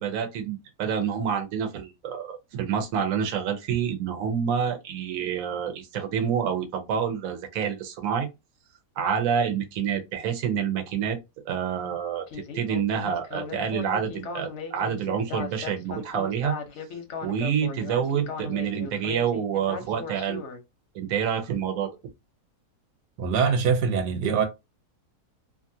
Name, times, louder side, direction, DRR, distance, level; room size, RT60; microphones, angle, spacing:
voice 1, 0.0-8.3 9.0-11.2 11.4-16.6 17.2-20.4 20.9-21.9, right 8 dB, 65° right, 1.0 m, -28 dB
Speech synthesizer, 12.3-20.6, left 5 dB, 60° left, 0.8 m, -37 dB
voice 2, 23.2-24.5, right 6 dB, 90° right, 1.3 m, -23 dB
2.8 x 2.5 x 2.6 m
omnidirectional pair, 1.7 m